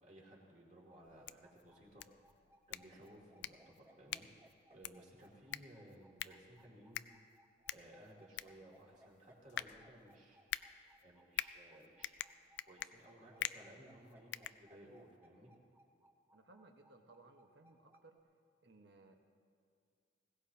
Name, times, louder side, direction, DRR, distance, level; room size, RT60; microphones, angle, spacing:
voice 1, 0.0-2.0 2.7-4.3 4.7-7.2 7.7-10.4 11.0-12.1 12.7-15.5, right 1 dB, 35° right, -3 dB, 2.7 m, -59 dB
sound 1, 0.9-18.2, right 1 dB, 10° right, 0.7 m, -67 dB
sound 2, 1.0-15.2, left 11 dB, 60° left, 0.3 m, -47 dB
voice 2, 16.3-18.2 18.6-19.2, right 2 dB, 55° right, 3 dB, 1.3 m, -62 dB
20.5 x 17.0 x 2.9 m, 2.4 s
head